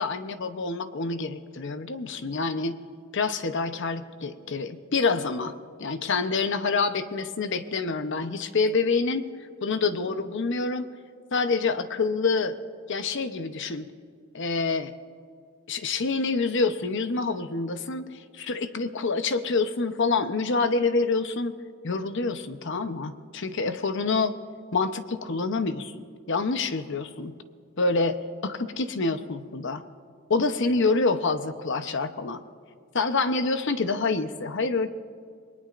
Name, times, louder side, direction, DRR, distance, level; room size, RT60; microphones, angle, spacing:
voice 1, 0.0-2.8 3.1-5.5 5.8-9.3 9.6-10.8 11.3-12.6 12.9-13.9 14.3-14.9 15.7-21.5 21.8-24.3 24.7-27.3 27.8-29.8 30.3-32.4 32.9-34.9, left 4 dB, 60° left, 9 dB, 0.8 m, -27 dB
28.0 x 20.5 x 2.5 m, 2.2 s
head